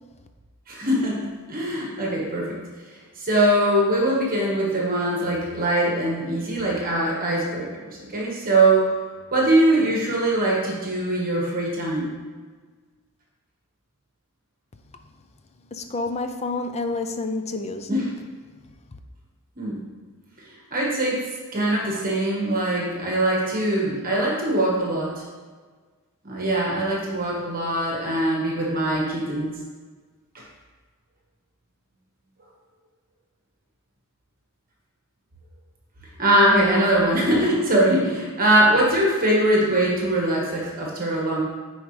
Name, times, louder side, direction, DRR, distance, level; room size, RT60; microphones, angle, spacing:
voice 1, 0.7-2.6 3.2-8.9 9.3-12.1 17.9-18.1 19.6-19.8 20.7-21.2 21.5-25.2 26.2-29.5 30.3-30.4 36.2-41.4, right 1 dB, 40° right, -3 dB, 1.4 m, -22 dB
voice 2, 15.7-18.0, left 3 dB, 30° left, 7 dB, 0.5 m, -29 dB
9.1 x 4.7 x 3.2 m, 1.5 s
head